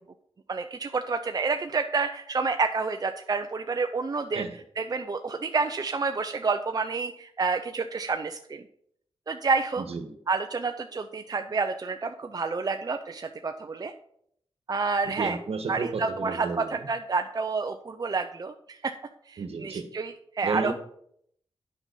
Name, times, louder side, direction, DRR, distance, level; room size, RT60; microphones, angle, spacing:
voice 1, 0.5-4.4 4.8-8.6 9.3-9.8 10.3-13.9 14.7-15.4 15.7-18.9 19.3-20.7, right 4 dB, 40° right, 7 dB, 0.5 m, -29 dB
voice 2, 9.8-10.2 15.2-16.9 19.4-19.8 20.4-20.7, right 4 dB, 80° right, 7 dB, 1.3 m, -32 dB
9.0 x 5.5 x 5.3 m, 0.69 s
wide cardioid pair, 95°, 10 cm